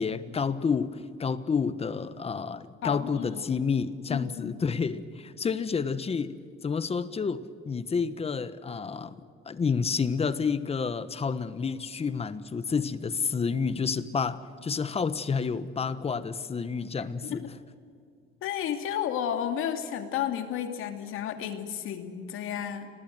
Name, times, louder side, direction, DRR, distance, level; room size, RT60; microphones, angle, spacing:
voice 1, 0.0-6.4 6.6-9.2 9.4-17.5, left 5 dB, 30° left, 13 dB, 1.3 m, -29 dB
voice 2, 2.8-3.4 4.1-4.7 17.2-17.4 18.4-22.9, left 9 dB, 80° left, 7 dB, 2.6 m, -32 dB
29.0 x 21.5 x 7.8 m, 2.3 s
cardioid pair, 125°, 21 cm